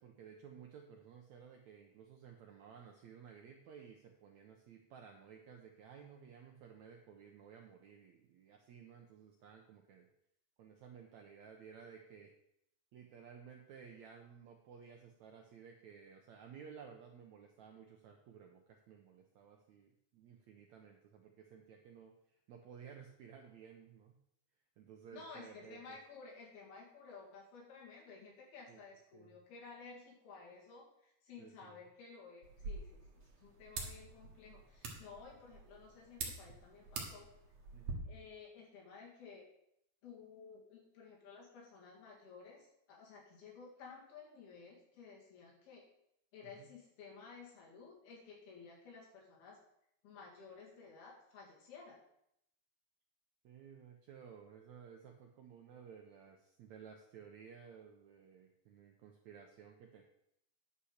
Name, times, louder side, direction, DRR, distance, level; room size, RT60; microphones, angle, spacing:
voice 1, 0.0-10.1 10.6-12.3 12.9-24.1 24.8-26.0 28.7-28.8 29.1-29.4 31.4-31.8 37.7-38.0 46.4-46.7 53.4-60.0, right 7 dB, 75° right, 2 dB, 1.6 m, -56 dB
voice 2, 25.1-37.3 38.1-39.5 40.0-45.8 46.3-49.6 50.0-52.0, left 5 dB, 85° left, -3 dB, 4.4 m, -54 dB
sound 1, 32.4-37.9, right 4 dB, 55° right, 2.4 m, -47 dB
10.0 x 5.6 x 6.5 m, 0.77 s
omnidirectional pair, 4.3 m